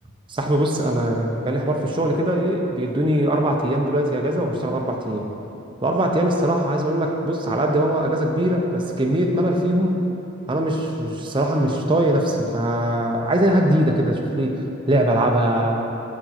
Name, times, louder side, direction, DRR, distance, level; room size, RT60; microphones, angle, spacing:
voice 1, 0.3-5.3 5.8-10.0 10.5-15.9, right 1 dB, 25° right, 1 dB, 0.6 m, -21 dB
6.5 x 4.9 x 5.7 m, 2.9 s
head